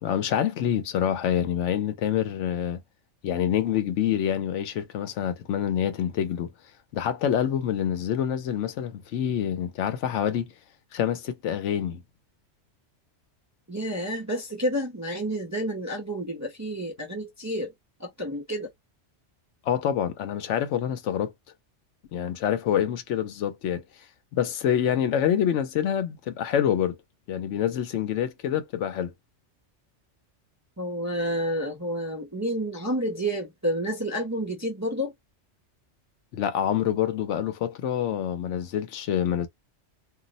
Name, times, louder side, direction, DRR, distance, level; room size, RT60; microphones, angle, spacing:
voice 1, 0.0-2.8 3.2-6.5 6.9-10.5 10.9-12.0 19.7-21.3 22.1-23.8 24.3-27.0 27.3-29.1 36.3-39.5, left 9 dB, 85° left, 0.9 m, -26 dB
voice 2, 13.7-17.7 18.0-18.7 30.8-35.1, equal, 25° right, 0.4 m, -30 dB
2.4 x 2.0 x 3.9 m
omnidirectional pair, 1.2 m